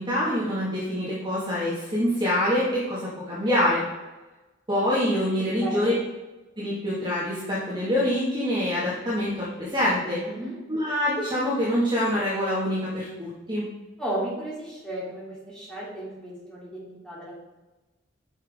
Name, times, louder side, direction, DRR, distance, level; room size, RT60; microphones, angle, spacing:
voice 1, 0.0-3.8 4.7-5.9 6.6-10.2 10.7-13.7, left 1 dB, 20° right, -8 dB, 1.8 m, -25 dB
voice 2, 5.6-5.9 10.2-10.6 14.0-17.4, right 1 dB, 5° left, -7 dB, 2.8 m, -34 dB
9.2 x 5.9 x 3.6 m, 1.1 s
head